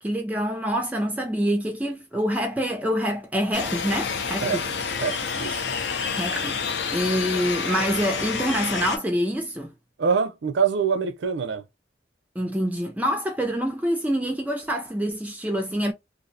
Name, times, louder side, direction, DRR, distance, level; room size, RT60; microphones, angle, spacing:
voice 1, 0.0-4.6 6.1-6.6 6.9-9.7 12.4-15.9, equal, 10° right, 0.3 m, -26 dB
sound 1, 3.5-9.0, left 5 dB, 70° left, 0.5 m, -28 dB
voice 2, 5.0-5.6 10.0-11.6, right 6 dB, 80° right, 0.5 m, -24 dB
2.6 x 2.1 x 2.5 m
head